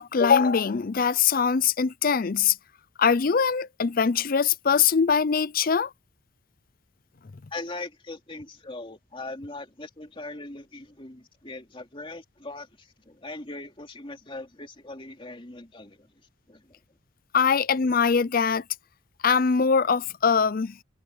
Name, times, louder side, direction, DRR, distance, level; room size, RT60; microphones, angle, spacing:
voice 1, 0.0-2.6 3.0-5.9 17.3-18.6 19.2-20.8, left 6 dB, 45° left, 0.5 m, -22 dB
voice 2, 7.5-16.1 16.5-16.8, left 2 dB, 25° left, 2.8 m, -40 dB
open air
head